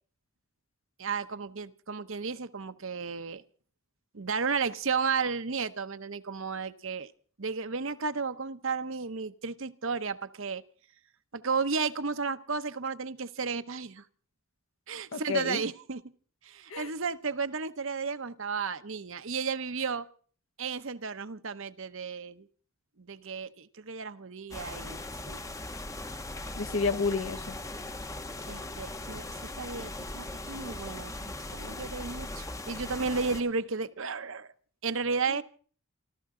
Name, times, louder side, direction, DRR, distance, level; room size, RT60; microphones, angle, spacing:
voice 1, 1.0-3.4 4.1-7.1 7.4-10.6 11.3-14.0 14.9-16.0 16.4-20.1 20.6-22.5 23.0-25.4 28.5-29.3 29.6-34.5 34.8-35.4, right 5 dB, 60° right, 0.9 m, -33 dB
voice 2, 15.1-15.6 16.7-16.9 26.5-27.6 35.3-35.4, left 4 dB, 65° left, 1.1 m, -30 dB
sound 1, 24.5-33.4, left 2 dB, 15° left, 0.8 m, -39 dB
28.5 x 13.0 x 3.8 m
head